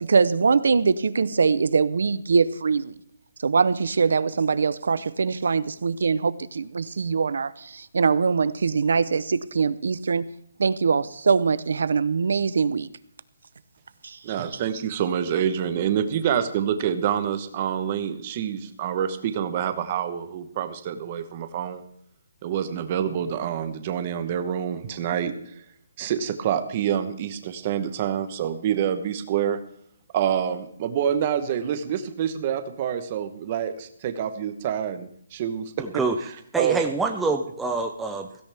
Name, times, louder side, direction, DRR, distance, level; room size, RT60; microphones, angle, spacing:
voice 1, 0.0-2.9 3.4-10.2 10.6-12.9 14.0-14.2, right 5 dB, 60° right, 16 dB, 0.7 m, -22 dB
voice 2, 14.2-21.8 22.4-25.5 26.0-29.6 30.1-35.9 36.6-36.8, right 9 dB, 20° right, 9 dB, 1.0 m, -27 dB
voice 3, 35.8-36.2 36.5-38.4, right 3 dB, 5° right, 3 dB, 0.5 m, -26 dB
16.5 x 16.0 x 3.5 m, 0.66 s
hypercardioid pair, 180°, 0 cm